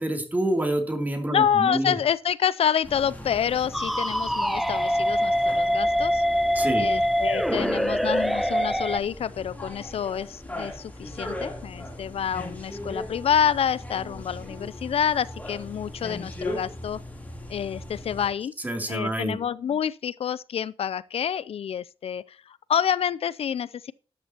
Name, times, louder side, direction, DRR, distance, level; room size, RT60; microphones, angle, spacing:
voice 1, 0.0-1.9 6.5-6.9 18.6-19.4, right 1 dB, 15° right, 2.8 m, -27 dB
voice 2, 1.3-6.2 6.8-17.0 17.5-18.5 18.9-23.9, left 8 dB, 80° left, 0.4 m, -27 dB
sound 1, 2.8-18.3, left 1 dB, 15° left, 3.1 m, -39 dB
sound 2, 3.7-9.0, equal, ahead, 0.7 m, -24 dB
13.0 x 11.0 x 2.9 m
wide cardioid pair, 150°, 10 cm